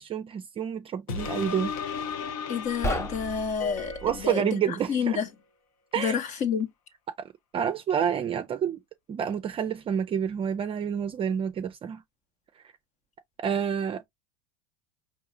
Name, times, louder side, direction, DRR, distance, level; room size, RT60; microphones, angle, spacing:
voice 1, 0.0-1.8 4.0-5.2 5.9-6.2 7.5-8.8 9.1-12.0 13.4-14.1, right 8 dB, 30° right, 0.5 m, -28 dB
sound 1, 1.1-4.0 4.5-4.6, left 6 dB, 70° left, 0.8 m, -35 dB
voice 2, 2.5-3.9 4.2-4.6 4.9-5.3 6.0-6.7, left 7 dB, 40° left, 1.0 m, -28 dB
sound 2, 2.7-4.3, equal, 15° left, 0.8 m, -33 dB
sound 3, 3.6-5.3, left 4 dB, 90° left, 1.1 m, -43 dB
4.7 x 2.9 x 2.7 m
hypercardioid pair, 85°, 19 cm